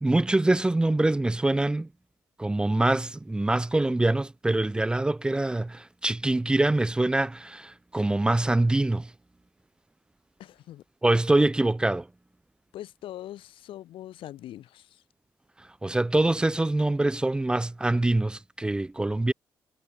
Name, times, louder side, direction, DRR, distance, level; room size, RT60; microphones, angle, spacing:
voice 1, 0.0-1.9 2.4-9.1 11.0-12.1 15.8-19.3, right 2 dB, 10° right, 0.7 m, -24 dB
voice 2, 10.4-10.8 12.7-15.0, left 13 dB, 85° left, 4.1 m, -42 dB
cardioid pair, 145°, 9 cm